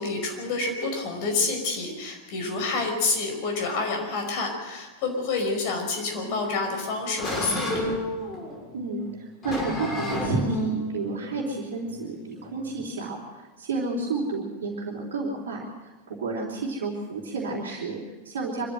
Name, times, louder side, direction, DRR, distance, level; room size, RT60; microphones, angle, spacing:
voice 1, 0.0-7.9, left 3 dB, 45° left, 3 dB, 5.2 m, -28 dB
sound 1, 6.2-12.8, equal, 25° left, 6.5 m, -32 dB
voice 2, 8.7-18.7, right 3 dB, 60° right, -4 dB, 3.7 m, -31 dB
25.5 x 13.5 x 7.8 m, 1.2 s
figure-of-eight pair, 90°, 0 cm